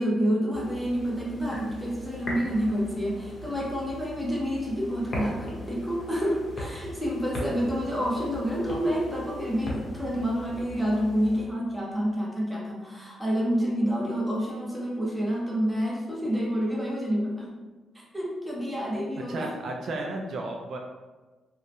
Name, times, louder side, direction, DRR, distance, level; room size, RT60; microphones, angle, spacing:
voice 1, 0.0-17.6 18.1-19.5, equal, ahead, -4 dB, 0.6 m, -28 dB
sound 1, 0.5-11.5, left 1 dB, 40° left, 0.7 m, -39 dB
voice 2, 19.3-20.8, right 2 dB, 60° right, 1 dB, 0.3 m, -33 dB
2.8 x 2.1 x 2.5 m, 1.2 s
cardioid pair, 110°, 0 cm